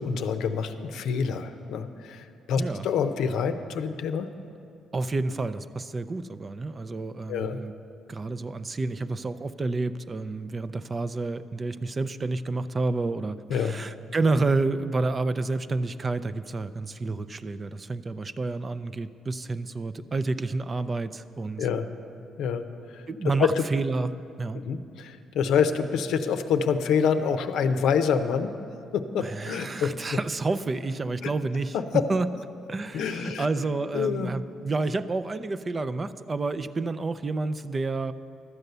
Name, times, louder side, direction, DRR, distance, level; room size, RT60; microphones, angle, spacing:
voice 1, 0.0-4.3 7.3-7.6 13.5-13.8 21.6-21.9 22.4-23.1 23.4-23.6 24.5-28.5 28.9-29.9 31.2-31.3 31.7-32.0 32.9-33.5 33.9-34.4, left 6 dB, 80° left, 9 dB, 0.6 m, -26 dB
voice 2, 4.9-7.7 8.1-21.7 23.1-24.1 24.4-24.6 29.2-32.3 32.7-38.1, right 3 dB, 30° right, 13 dB, 0.4 m, -29 dB
12.5 x 8.0 x 6.7 m, 2.5 s
cardioid pair, 90°, 0 cm